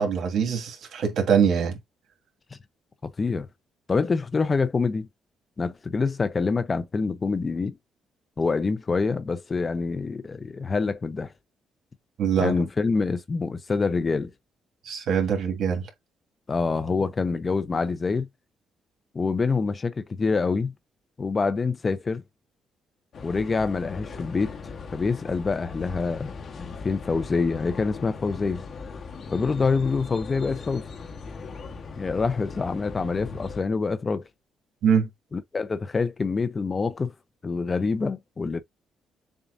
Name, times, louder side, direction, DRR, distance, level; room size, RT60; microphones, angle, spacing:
voice 1, 0.0-1.8 12.2-12.5 14.9-15.9 34.8-35.1, right 7 dB, 70° right, 1.9 m, -23 dB
voice 2, 3.0-3.5 3.9-5.1 5.6-7.8 8.4-11.3 12.4-14.3 16.5-18.3 19.1-20.7 21.2-22.2 23.2-24.6 24.9-28.7 29.3-30.8 32.0-34.2 35.3-37.1 37.4-38.6, left 4 dB, 35° left, 0.7 m, -26 dB
sound 1, 23.1-33.6, left 4 dB, 55° left, 1.2 m, -39 dB
7.2 x 2.4 x 2.6 m
cardioid pair, 90°, 0 cm